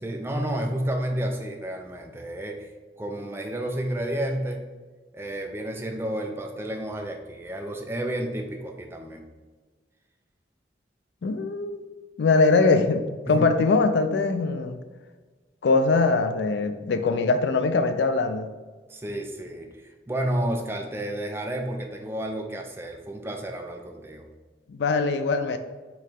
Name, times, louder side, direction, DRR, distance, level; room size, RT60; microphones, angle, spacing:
voice 1, 0.0-2.7 3.0-4.6 5.1-9.2 13.3-13.5 18.9-19.7 20.1-24.3, right 1 dB, 15° right, 3 dB, 0.4 m, -31 dB
voice 2, 11.2-11.8 12.2-14.8 15.6-18.5 24.7-25.6, left 3 dB, 70° left, 8 dB, 0.4 m, -22 dB
4.6 x 3.1 x 3.6 m, 1.4 s
head